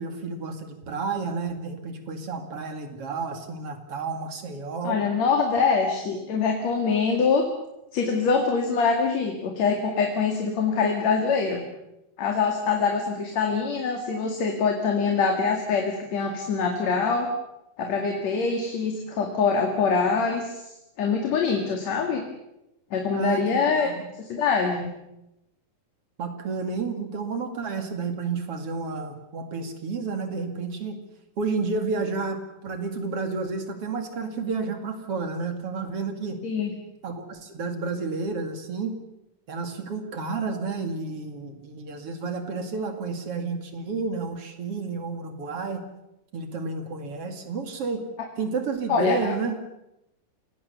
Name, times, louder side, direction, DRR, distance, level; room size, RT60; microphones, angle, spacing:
voice 1, 0.0-5.0 23.1-24.1 26.2-31.0 31.4-36.4 37.0-39.0 39.5-45.8 46.3-48.0 48.4-49.6, right 4 dB, 45° right, 6 dB, 3.0 m, -31 dB
voice 2, 4.8-7.4 7.9-11.6 12.2-17.3 17.8-20.7 21.0-22.2 22.9-23.9 24.2-24.9 36.4-36.7 48.9-49.3, left 5 dB, 55° left, 2 dB, 3.2 m, -24 dB
28.0 x 18.0 x 7.0 m, 0.89 s
omnidirectional pair, 3.9 m